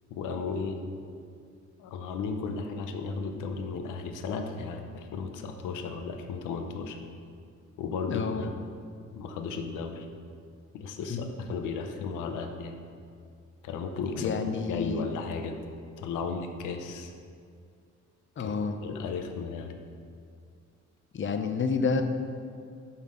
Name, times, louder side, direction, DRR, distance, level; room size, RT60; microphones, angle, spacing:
voice 1, 0.1-0.8 1.8-7.0 7.8-8.5 9.1-10.1 10.7-12.7 13.6-14.4 14.7-15.5 16.0-17.1 18.4-18.5 18.8-19.8, left 5 dB, 90° left, 5 dB, 0.8 m, -34 dB
voice 2, 8.1-8.5 11.1-11.3 14.2-15.0 18.4-18.8 21.1-22.0, left 5 dB, 40° left, 7 dB, 0.7 m, -29 dB
5.7 x 5.3 x 6.7 m, 2.2 s
cardioid pair, 90°, 30 cm